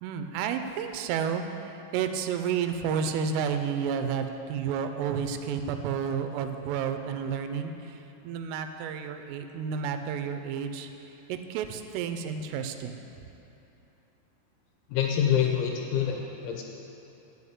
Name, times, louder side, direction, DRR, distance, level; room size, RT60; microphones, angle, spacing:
voice 1, 0.0-10.9 11.3-13.0, right 7 dB, 85° right, 7 dB, 3.1 m, -31 dB
voice 2, 14.9-16.6, left 8 dB, 80° left, 2 dB, 2.8 m, -26 dB
11.0 x 5.4 x 8.1 m, 2.9 s
omnidirectional pair, 5.9 m